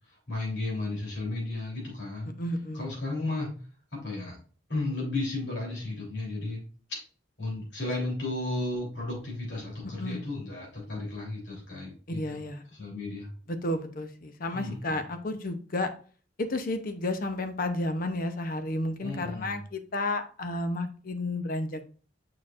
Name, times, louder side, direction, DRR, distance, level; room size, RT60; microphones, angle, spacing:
voice 1, 0.3-2.4 2.7-3.6 3.9-4.4 4.7-6.6 7.4-12.4 12.7-13.3 14.5-15.0 19.0-19.5, left 2 dB, 65° left, -3 dB, 3.3 m, -34 dB
voice 2, 2.4-2.9 10.0-10.2 12.1-12.6 13.5-15.9 16.4-21.9, left 2 dB, 50° left, 8 dB, 0.7 m, -32 dB
6.6 x 5.8 x 2.5 m, 0.41 s
head